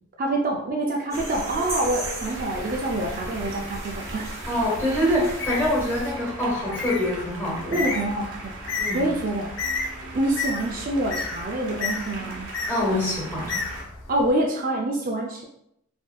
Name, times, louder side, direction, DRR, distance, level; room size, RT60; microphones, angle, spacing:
voice 1, 0.2-4.3 7.7-8.5 8.9-9.5 10.1-12.5 14.1-15.4, right 1 dB, 40° right, -1 dB, 0.4 m, -26 dB
sound 1, 1.1-6.1, right 1 dB, 15° right, 0.9 m, -36 dB
sound 2, 1.1-13.8, right 2 dB, 55° right, 0.8 m, -39 dB
voice 2, 4.5-7.9 8.8-9.1 12.7-13.6, left 1 dB, 10° left, -5 dB, 1.4 m, -25 dB
Bird, 5.2-14.3, left 4 dB, 55° left, 0.6 m, -33 dB
4.8 x 2.7 x 2.3 m, 0.74 s
head